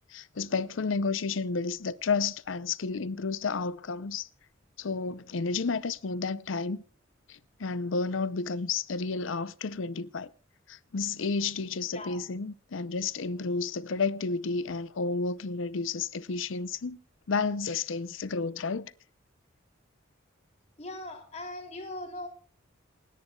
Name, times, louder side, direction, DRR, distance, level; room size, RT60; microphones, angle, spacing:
voice 1, 0.1-4.3 4.8-6.8 7.3-10.3 10.7-17.0 17.3-18.9, left 4 dB, 70° left, 0.6 m, -31 dB
voice 2, 20.8-22.3, left 1 dB, 35° left, 2.9 m, -40 dB
28.5 x 10.5 x 2.3 m
head